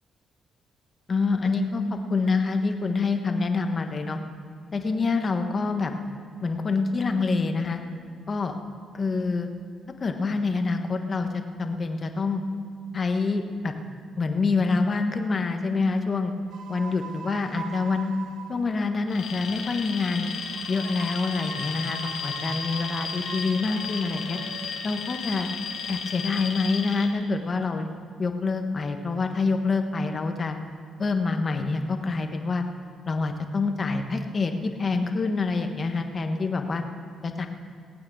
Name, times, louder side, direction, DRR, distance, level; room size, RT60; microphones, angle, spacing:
voice 1, 1.1-4.2 4.7-6.0 6.4-7.8 8.3-8.5 8.9-9.5 10.0-12.4 12.9-13.7 14.2-16.3 16.7-18.1 18.5-20.3 20.7-24.4 24.8-25.5 25.9-27.9 28.2-30.6 31.0-32.6 33.1-34.5 34.8-36.8 37.2-37.5, left 4 dB, 40° left, 6 dB, 1.3 m, -26 dB
sound 1, 16.5-19.0 20.3-24.7, right 7 dB, 75° right, 0.8 m, -42 dB
Alarm, 19.1-27.1, left 6 dB, 70° left, 1.7 m, -34 dB
19.0 x 8.7 x 6.3 m, 2.2 s
cardioid pair, 90°, 0 cm